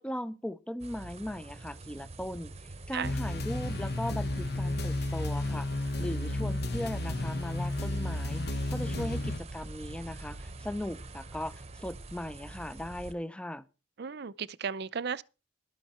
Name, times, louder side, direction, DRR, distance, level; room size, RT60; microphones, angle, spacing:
voice 1, 0.0-2.5 2.9-13.6, left 1 dB, 5° left, 0.6 m, -38 dB
sound 1, 0.8-13.1, right 2 dB, 35° right, 0.9 m, -45 dB
sound 2, 3.0-9.4, left 1 dB, 55° left, 1.3 m, -32 dB
voice 2, 14.0-15.2, right 6 dB, 60° right, 0.6 m, -35 dB
13.0 x 12.0 x 4.3 m
head